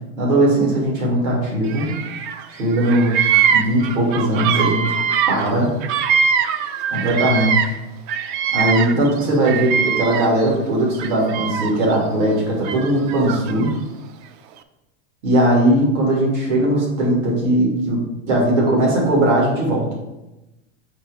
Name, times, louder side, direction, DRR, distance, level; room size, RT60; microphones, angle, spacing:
voice 1, 0.2-1.9 2.5-4.9 5.3-5.7 6.9-7.8 8.5-13.7 15.2-19.9, right 1 dB, 85° right, -3 dB, 2.4 m, -19 dB
Bird vocalization bird call bird song, 1.7-2.5 2.7-7.8 8.1-10.5 10.9-11.9 12.6-13.7, right 7 dB, 45° right, 0.5 m, -22 dB
7.8 x 3.2 x 4.8 m, 0.99 s
supercardioid pair, 145°, 35 cm